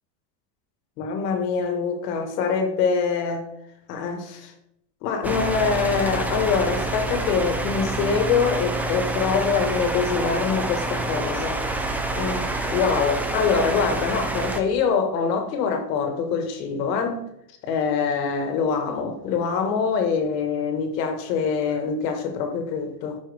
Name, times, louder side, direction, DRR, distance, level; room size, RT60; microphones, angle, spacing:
voice 1, 1.0-3.5 3.9-4.5 5.0-11.6 12.1-17.2 17.6-23.2, left 5 dB, 85° left, 1.8 m, -24 dB
sound 1, 5.2-14.6, right 2 dB, 5° right, 0.3 m, -27 dB
12.0 x 5.3 x 3.5 m
supercardioid pair, 135°, 48 cm